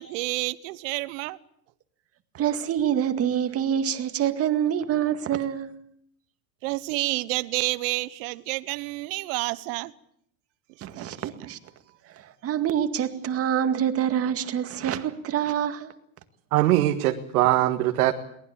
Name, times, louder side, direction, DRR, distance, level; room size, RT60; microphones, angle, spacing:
voice 1, 0.0-1.4 6.6-9.9 10.8-11.5, right 22 dB, 60° right, 1.2 m, -30 dB
voice 2, 2.3-5.7 10.8-11.6 12.1-15.9, right 9 dB, 30° right, 2.1 m, -26 dB
voice 3, 16.5-18.1, right 14 dB, 80° right, 1.9 m, -21 dB
23.0 x 19.0 x 8.8 m
supercardioid pair, 135°, 44 cm